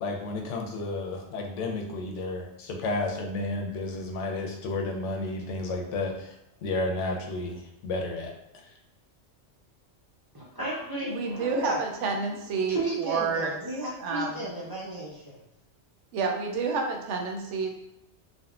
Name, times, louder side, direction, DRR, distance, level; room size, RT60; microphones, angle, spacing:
voice 1, 0.0-6.3 6.6-8.3, left 2 dB, 85° left, 2 dB, 0.9 m, -32 dB
voice 2, 10.3-11.8 12.7-15.4, right 1 dB, 30° right, -6 dB, 0.4 m, -33 dB
voice 3, 11.0-13.5 14.0-14.4 16.1-17.7, right 4 dB, 80° right, 2 dB, 0.9 m, -29 dB
3.6 x 2.1 x 2.3 m, 0.86 s
omnidirectional pair, 1.2 m